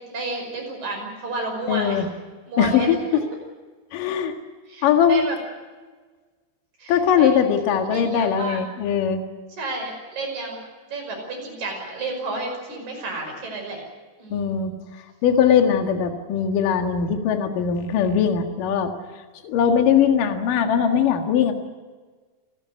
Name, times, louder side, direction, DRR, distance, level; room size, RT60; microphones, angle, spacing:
voice 1, 0.1-2.0 2.5-2.9 4.7-5.4 6.8-7.4 7.9-8.6 9.5-10.6 10.9-13.8 14.2-14.5, right 2 dB, 35° right, 2 dB, 6.8 m, -31 dB
voice 2, 1.7-2.1 2.6-3.0 3.9-4.3 4.8-5.2 6.9-9.2 14.3-14.7 15.2-18.9 19.4-21.5, left 8 dB, 55° left, 5 dB, 2.7 m, -20 dB
29.0 x 13.0 x 9.6 m, 1.4 s
omnidirectional pair, 5.8 m